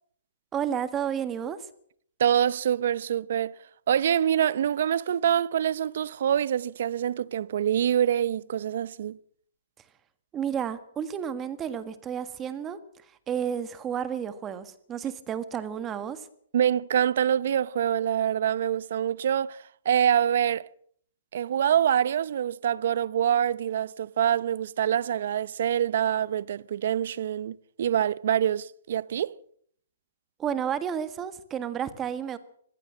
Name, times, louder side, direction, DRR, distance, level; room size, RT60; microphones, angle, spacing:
voice 1, 0.5-1.6 10.3-12.8 13.3-16.3 30.4-32.4, right 8 dB, 20° right, 1.7 m, -31 dB
voice 2, 2.2-3.5 3.9-9.2 16.5-20.7 21.3-29.3, right 9 dB, 65° right, 0.7 m, -25 dB
21.5 x 16.5 x 7.5 m
hypercardioid pair, 145°, 0 cm